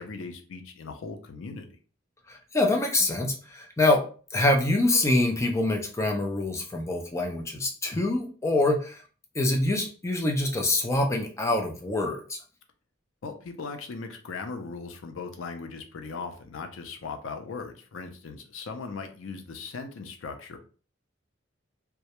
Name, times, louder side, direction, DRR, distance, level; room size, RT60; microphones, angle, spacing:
voice 1, 0.0-1.8 13.2-20.6, left 4 dB, 85° left, 6 dB, 0.5 m, -38 dB
voice 2, 2.3-4.0 4.3-9.0 9.4-12.4, left 2 dB, 15° left, 2 dB, 0.4 m, -25 dB
2.2 x 2.0 x 2.8 m, 0.39 s
head